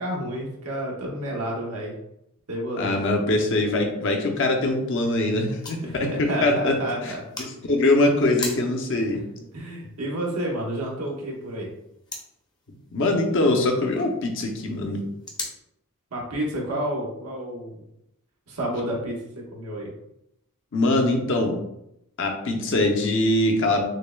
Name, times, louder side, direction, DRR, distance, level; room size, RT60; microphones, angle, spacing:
voice 1, 0.0-1.9 2.5-3.0 5.8-7.2 9.4-11.7 16.1-17.8 18.5-19.9, right 1 dB, 90° right, -2 dB, 1.1 m, -30 dB
voice 2, 2.8-6.8 7.0-7.1 7.4-9.2 12.9-15.0 20.7-21.6 22.2-23.8, left 2 dB, 60° left, 2 dB, 0.6 m, -22 dB
sound 1, 4.6-15.6, left 2 dB, 20° left, 0.6 m, -42 dB
6.3 x 2.1 x 2.2 m, 0.81 s
head